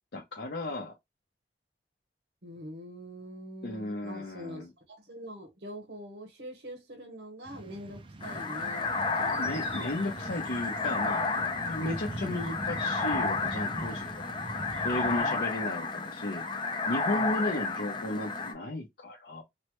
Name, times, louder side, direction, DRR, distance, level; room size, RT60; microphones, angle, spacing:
voice 1, 0.1-0.9 3.6-4.7 9.4-14.3 14.8-16.4 16.9-19.4, left 2 dB, 70° left, 0.7 m, -34 dB
voice 2, 2.4-9.9 15.2-15.4 17.1-17.3, equal, 75° right, 1.0 m, -44 dB
sound 1, 7.5-15.2, right 1 dB, 30° right, 0.4 m, -42 dB
sound 2, 8.2-18.5, left 3 dB, 25° left, 0.5 m, -32 dB
3.1 x 2.1 x 3.0 m
head